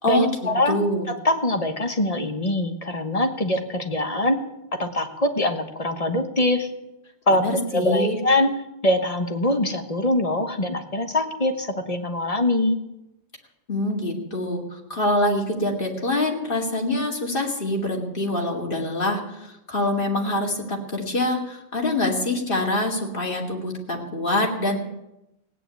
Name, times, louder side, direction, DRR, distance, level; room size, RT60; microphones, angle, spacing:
voice 1, 0.1-4.4 4.8-6.7 7.3-7.4 7.7-8.5 8.8-12.8, left 1 dB, 35° left, 5 dB, 1.3 m, -23 dB
voice 2, 0.7-1.1 7.3-8.2 13.7-14.6 14.9-24.8, left 1 dB, 55° left, 0 dB, 2.6 m, -25 dB
17.0 x 9.3 x 8.2 m, 0.91 s
omnidirectional pair, 1.1 m